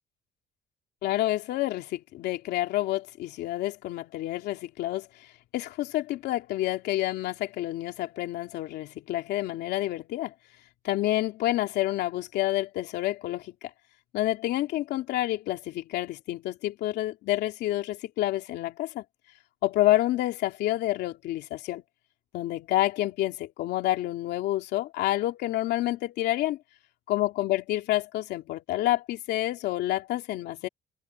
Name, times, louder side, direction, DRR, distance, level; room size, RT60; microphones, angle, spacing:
voice 1, 1.0-5.1 5.5-10.3 10.8-13.5 14.1-19.0 19.6-21.8 22.3-26.6 27.1-30.7, left 15 dB, 80° left, 2.9 m, -28 dB
cardioid pair, 110°, 17 cm